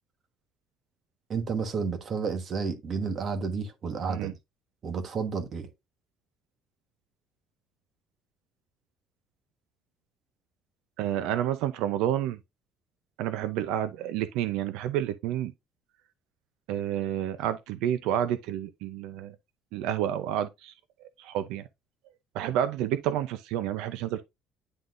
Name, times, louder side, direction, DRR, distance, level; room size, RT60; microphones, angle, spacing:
voice 1, 1.3-4.3 4.8-5.7, right 5 dB, 35° right, 1.3 m, -31 dB
voice 2, 11.0-12.4 13.2-15.5 16.7-19.4 19.7-20.7 21.2-21.6 22.3-24.2, right 11 dB, 85° right, 0.6 m, -29 dB
9.8 x 3.8 x 2.5 m
cardioid pair, 150°, 0 cm